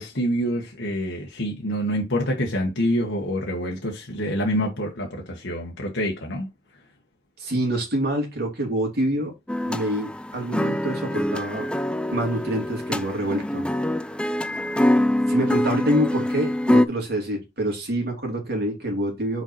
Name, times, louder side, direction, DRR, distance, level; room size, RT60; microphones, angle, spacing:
voice 1, 0.0-6.5, equal, 70° left, 1.5 m, -26 dB
voice 2, 7.4-9.3 9.7-11.7 12.1-13.7 15.3-19.4, right 1 dB, 55° right, 2.6 m, -26 dB
sound 1, 9.5-16.9, left 1 dB, 5° left, 0.3 m, -24 dB
5.7 x 4.6 x 4.2 m
head